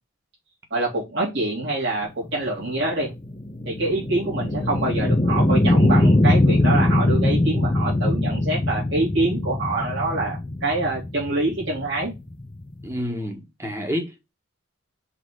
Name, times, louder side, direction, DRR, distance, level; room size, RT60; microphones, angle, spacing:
voice 1, 0.7-3.1 3.6-12.1, right 2 dB, 60° right, 3.1 m, -25 dB
sound 1, 2.3-13.0, left 1 dB, 25° left, 0.8 m, -21 dB
voice 2, 12.8-14.3, equal, 15° right, 1.5 m, -29 dB
5.6 x 3.8 x 4.7 m
head